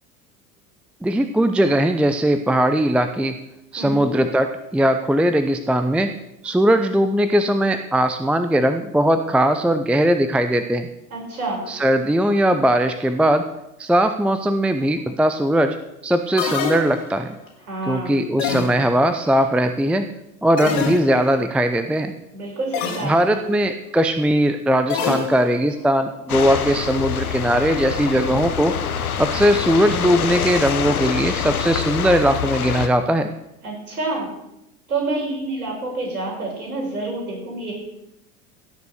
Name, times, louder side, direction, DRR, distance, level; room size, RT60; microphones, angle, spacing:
voice 1, 1.0-3.4 3.7-6.1 6.4-10.9 11.7-13.5 13.8-15.8 16.0-17.4 17.9-20.1 20.4-22.1 23.0-28.8 29.2-33.3, right 1 dB, 5° right, 9 dB, 0.6 m, -19 dB
voice 2, 3.8-4.1 11.1-11.6 17.7-18.2 22.3-23.4 33.6-34.3 34.9-37.7, right 2 dB, 75° right, -1 dB, 5.7 m, -28 dB
sound 1, 16.4-17.3 18.4-19.1 20.6-21.4 22.7-23.3 24.9-25.8, left 6 dB, 60° left, 2.5 m, -26 dB
sound 2, 26.3-32.9, left 8 dB, 75° left, 1.2 m, -25 dB
16.5 x 6.9 x 6.5 m, 0.87 s
figure-of-eight pair, 75°, 44 cm